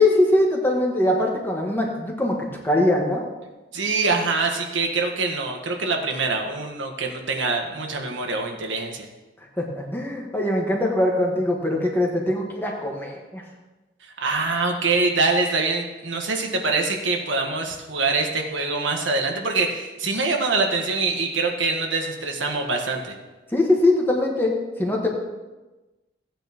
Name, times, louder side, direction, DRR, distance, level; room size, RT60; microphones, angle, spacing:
voice 1, 0.0-2.4 2.6-3.2 9.6-13.4 23.5-24.5 24.8-25.1, left 1 dB, 10° left, -1 dB, 1.5 m, -21 dB
voice 2, 3.7-9.1 14.2-23.1, right 3 dB, 75° right, 2 dB, 1.5 m, -24 dB
16.0 x 9.1 x 3.0 m, 1.1 s
head